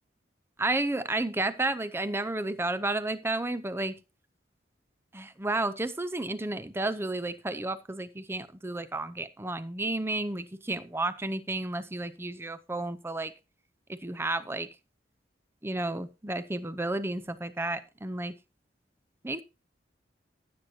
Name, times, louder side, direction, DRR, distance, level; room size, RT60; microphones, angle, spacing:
voice 1, 0.6-4.0 5.1-13.3 13.9-14.7 15.6-18.3 19.2-19.4, right 2 dB, 15° right, 13 dB, 0.6 m, -32 dB
14.5 x 7.9 x 2.8 m, 0.29 s
head